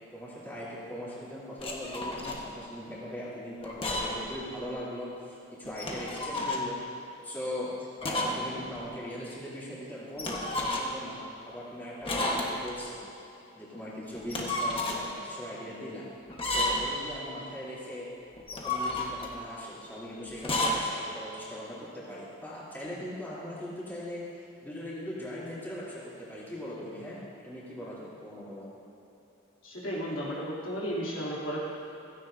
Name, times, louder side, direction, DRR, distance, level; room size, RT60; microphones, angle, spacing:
voice 1, 0.1-6.8 7.2-13.0 13.5-16.0 16.4-18.1 18.5-28.6, equal, 10° left, -10 dB, 3.3 m, -40 dB
sound 1, 1.6-2.4 3.6-4.3 4.6-4.7 5.7-6.7 8.0-8.5 8.7-8.8 10.2-11.0 12.0-12.8 14.1-15.0 16.3-17.0 18.4-19.4 20.4-20.8, left 1 dB, 25° left, 1.3 m, -31 dB
voice 2, 29.6-31.6, equal, 70° left, -7 dB, 3.2 m, -34 dB
16.0 x 15.5 x 2.7 m, 3.0 s
head